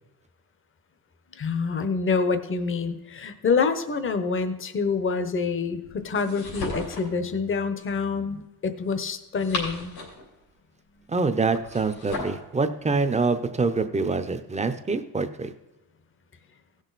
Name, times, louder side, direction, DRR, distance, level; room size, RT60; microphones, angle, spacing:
voice 1, 1.3-10.0 11.0-11.1, left 5 dB, 35° left, 10 dB, 0.9 m, -27 dB
sound 1, 6.1-7.2 9.1-10.3 11.5-12.4, left 3 dB, 85° left, 3.2 m, -34 dB
voice 2, 11.1-15.5, right 4 dB, 20° right, 9 dB, 0.7 m, -25 dB
16.5 x 6.4 x 4.0 m, 0.98 s
cardioid pair, 120°, 35 cm